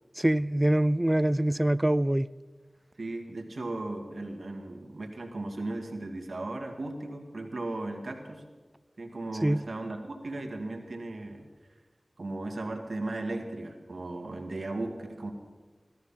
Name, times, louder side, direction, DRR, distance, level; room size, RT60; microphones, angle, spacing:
voice 1, 0.2-2.3 9.4-9.6, right 1 dB, 20° right, 0.4 m, -24 dB
voice 2, 3.0-8.4 9.0-11.5 12.2-15.3, right 2 dB, 75° right, 2.0 m, -36 dB
16.5 x 13.0 x 5.7 m
wide cardioid pair, 45°, 0 cm